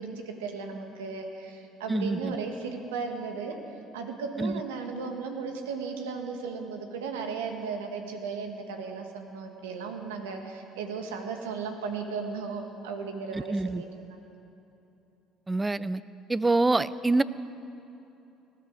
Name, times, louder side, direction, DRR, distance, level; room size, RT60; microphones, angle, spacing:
voice 1, 0.0-3.6 3.9-14.2, right 5 dB, 85° right, 4 dB, 1.4 m, -36 dB
voice 2, 1.9-2.3 4.4-4.6 13.3-13.8 15.5-16.0 16.3-17.2, right 2 dB, 20° right, 17 dB, 0.5 m, -26 dB
19.0 x 12.5 x 5.1 m, 2.9 s
hypercardioid pair, 65°, 0 cm